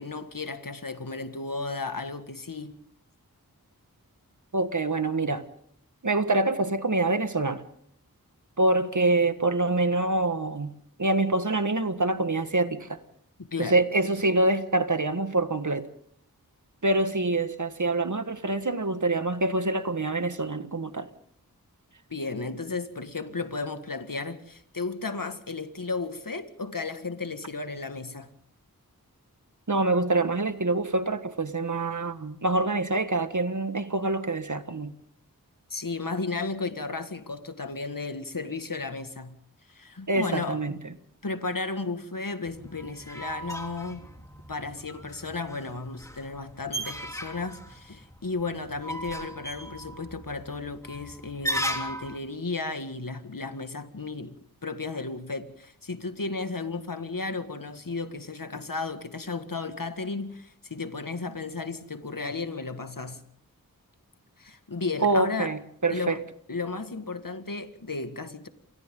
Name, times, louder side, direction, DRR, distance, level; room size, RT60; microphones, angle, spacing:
voice 1, 0.0-2.8 13.4-13.8 22.1-28.3 35.7-39.4 39.7-40.6 41.2-44.1 44.5-54.4 54.6-63.2 64.4-65.6 65.9-66.2 66.5-68.5, left 3 dB, 65° left, 1.9 m, -34 dB
voice 2, 4.5-5.4 6.0-7.6 8.6-10.7 11.0-13.0 13.6-15.9 16.8-21.1 29.7-34.9 40.1-40.8 65.0-66.2, right 2 dB, 55° right, 1.6 m, -25 dB
sound 1, 42.5-52.2, equal, 10° left, 3.5 m, -37 dB
28.5 x 24.5 x 3.8 m
wide cardioid pair, 40°, 36 cm